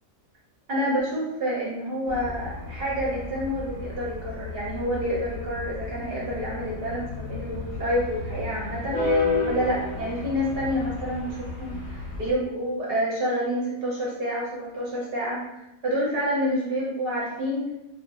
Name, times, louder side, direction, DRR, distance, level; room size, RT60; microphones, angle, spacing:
voice 1, 0.7-15.4 15.8-17.6, equal, 55° right, -5 dB, 0.7 m, -28 dB
sound 1, 2.1-12.3, left 3 dB, 45° left, 0.7 m, -32 dB
2.4 x 2.0 x 2.8 m, 0.92 s
omnidirectional pair, 1.5 m